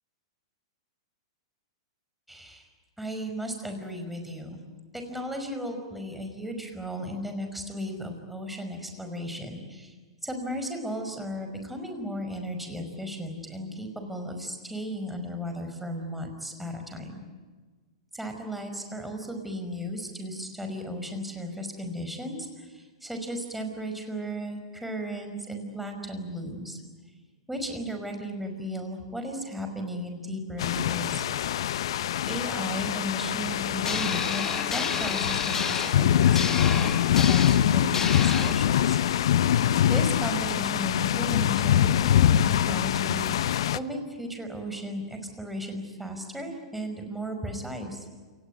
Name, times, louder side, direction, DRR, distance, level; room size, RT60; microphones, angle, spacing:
voice 1, 2.3-2.7 3.0-4.6 4.9-9.9 10.2-17.2 18.1-26.8 27.5-31.2 32.3-39.0 39.9-48.1, equal, 5° right, 4 dB, 5.4 m, -35 dB
sound 1, 30.6-43.8, left 10 dB, 70° left, 0.8 m, -24 dB
sound 2, 33.8-38.5, left 5 dB, 15° left, 1.7 m, -31 dB
28.0 x 19.5 x 9.5 m, 1.4 s
hypercardioid pair, 115°, 3 cm